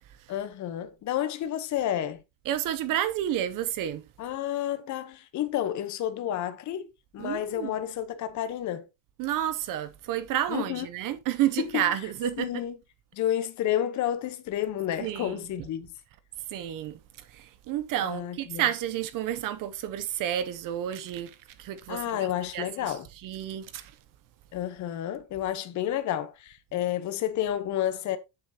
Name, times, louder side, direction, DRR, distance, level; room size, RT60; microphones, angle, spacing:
voice 1, 0.3-2.2 4.2-6.9 7.1-8.9 10.5-10.9 11.7-11.9 12.4-12.8 13.1-15.9 18.0-18.6 21.9-23.1 24.5-28.2, left 11 dB, 35° left, 1.0 m, -30 dB
voice 2, 2.5-4.0 7.2-7.7 9.2-12.6 15.0-15.4 16.5-22.3 22.5-22.9 23.2-23.9, right 11 dB, 40° right, 0.8 m, -30 dB
8.0 x 7.8 x 2.9 m
cardioid pair, 155°, 50 cm